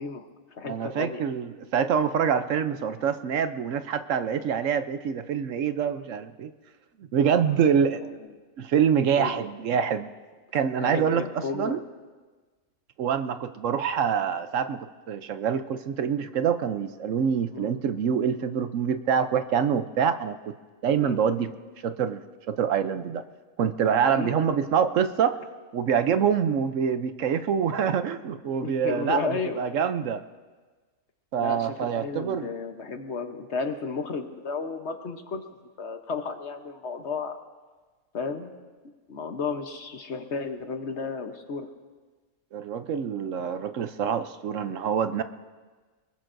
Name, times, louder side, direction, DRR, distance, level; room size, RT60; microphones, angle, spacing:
voice 1, 0.0-1.2 7.5-7.6 8.0-8.2 9.2-9.4 10.8-11.8 17.5-17.7 21.0-21.2 24.0-24.4 28.6-29.6 31.4-35.4 35.8-37.4 38.1-38.6 39.1-41.7, left 4 dB, 55° left, 6 dB, 1.2 m, -33 dB
voice 2, 0.6-6.5 7.1-8.0 8.6-10.1 10.5-11.2 11.5-11.8 13.0-20.6 20.8-21.5 21.8-23.2 23.6-25.4 25.7-30.2 31.3-32.5 42.5-45.2, right 7 dB, 70° right, 10 dB, 1.0 m, -25 dB
24.5 x 21.5 x 2.6 m, 1.4 s
omnidirectional pair, 1.5 m